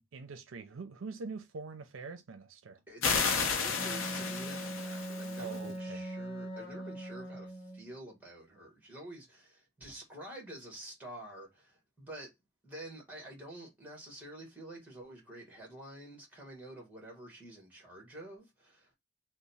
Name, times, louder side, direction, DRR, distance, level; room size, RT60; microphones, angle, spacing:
voice 1, 0.0-2.8 5.4-6.0, right 4 dB, 75° right, 0.5 m, -44 dB
voice 2, 2.9-12.3 12.6-18.9, right 1 dB, 10° right, 1.3 m, -48 dB
sound 1, 3.0-5.6, left 5 dB, 85° left, 0.6 m, -32 dB
Wind instrument woodwind instrument, 3.8-7.9, right 1 dB, 20° left, 1.6 m, -41 dB
3.1 x 2.0 x 4.0 m
head